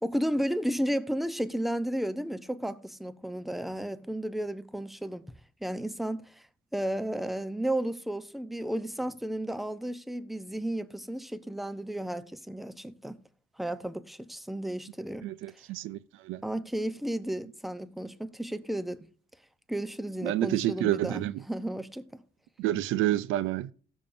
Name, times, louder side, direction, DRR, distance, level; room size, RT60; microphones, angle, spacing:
voice 1, 0.0-5.2 5.6-6.4 6.7-13.2 13.6-15.3 16.4-19.1 19.7-22.2, right 1 dB, ahead, 0.7 m, -33 dB
voice 2, 15.2-16.0 16.2-16.4 20.2-21.3 22.6-23.7, right 14 dB, 90° right, 0.5 m, -28 dB
16.5 x 7.2 x 2.6 m
cardioid pair, 90°, 20 cm